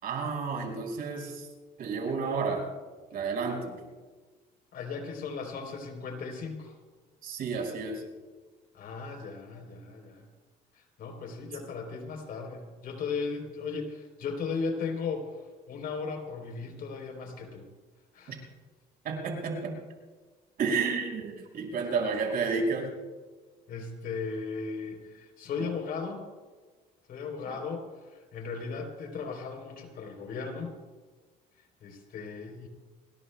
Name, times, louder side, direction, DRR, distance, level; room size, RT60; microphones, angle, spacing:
voice 1, 0.0-1.5 1.8-2.7 3.1-3.9 7.2-8.0 18.3-18.4 19.0-19.7 20.6-22.9 27.5-27.6, right 4 dB, 60° right, 1 dB, 5.3 m, -31 dB
voice 2, 4.7-6.8 8.7-10.3 10.7-15.4 15.7-17.7 18.1-18.5 23.7-26.3 27.1-30.8 31.8-32.7, left 4 dB, 60° left, 4 dB, 3.6 m, -36 dB
28.5 x 21.0 x 2.2 m, 1.4 s
cardioid pair, 110°, 17 cm